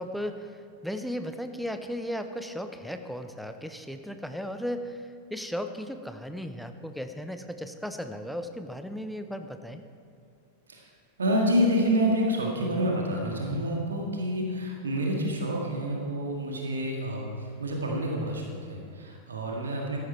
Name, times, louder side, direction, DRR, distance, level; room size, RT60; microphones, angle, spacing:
voice 1, 0.0-9.8, equal, ahead, 7 dB, 0.7 m, -36 dB
voice 2, 11.2-20.0, equal, 70° right, -1 dB, 1.9 m, -28 dB
14.0 x 10.5 x 4.5 m, 2.2 s
figure-of-eight pair, 90°, 0 cm